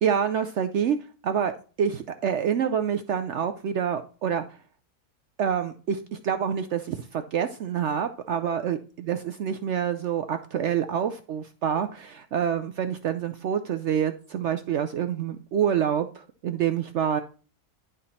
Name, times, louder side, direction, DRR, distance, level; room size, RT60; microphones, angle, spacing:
voice 1, 0.0-1.0 1.2-1.5 1.8-4.4 5.4-17.2, right 8 dB, 70° right, 8 dB, 0.6 m, -27 dB
11.0 x 3.8 x 4.1 m, 0.38 s
omnidirectional pair, 1.7 m